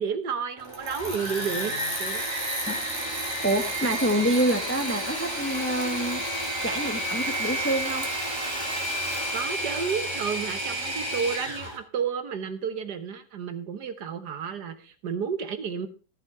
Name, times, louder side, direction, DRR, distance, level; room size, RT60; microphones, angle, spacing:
voice 1, 0.0-2.3 9.3-15.9, right 6 dB, 60° right, 10 dB, 1.6 m, -31 dB
Engine / Mechanisms, 0.6-11.8, right 1 dB, 10° right, 3.1 m, -30 dB
voice 2, 2.7-6.2 6.6-8.1, right 1 dB, 10° left, 6 dB, 0.8 m, -27 dB
14.5 x 7.4 x 5.5 m, 0.36 s
omnidirectional pair, 2.2 m